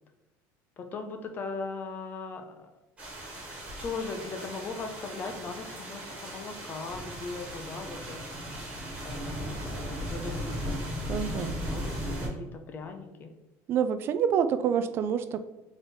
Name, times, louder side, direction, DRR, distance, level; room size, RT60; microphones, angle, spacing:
voice 1, 0.8-2.7 3.8-8.2 9.0-13.3, left 4 dB, 30° left, 6 dB, 0.6 m, -39 dB
sound 1, 3.0-12.3, equal, 15° right, 1.5 m, -37 dB
voice 2, 11.1-11.6 13.7-15.4, right 8 dB, 35° right, 11 dB, 0.3 m, -27 dB
4.0 x 3.7 x 3.5 m, 1.1 s
cardioid pair, 165°, 7 cm